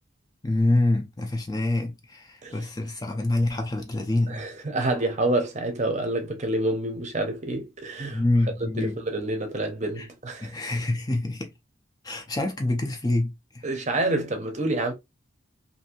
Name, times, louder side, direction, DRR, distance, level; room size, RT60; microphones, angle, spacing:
voice 1, 0.4-4.4 8.1-8.9 10.0-10.1 10.4-11.5 12.0-13.7, left 2 dB, 20° left, 0.4 m, -26 dB
voice 2, 4.3-8.2 8.8-10.5 13.6-14.9, right 2 dB, 35° right, 0.7 m, -27 dB
2.6 x 2.6 x 2.8 m
head